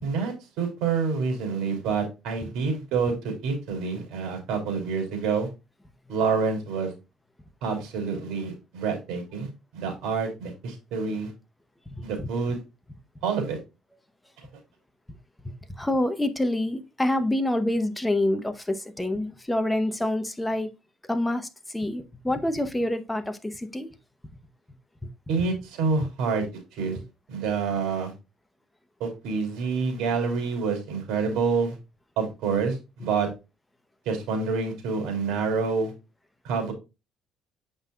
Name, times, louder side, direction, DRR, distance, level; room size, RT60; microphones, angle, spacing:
voice 1, 0.0-5.5 6.1-6.9 7.6-11.3 12.0-12.6 13.2-13.6 25.3-26.5 26.8-27.0 27.3-28.1 29.0-31.8 32.2-33.3 34.0-35.9 36.4-36.7, right 5 dB, 75° right, 3.1 m, -27 dB
voice 2, 11.9-12.3 15.7-20.7 21.1-23.9, left 1 dB, 5° left, 0.9 m, -27 dB
7.9 x 5.5 x 2.3 m
cardioid pair, 120°, 0 cm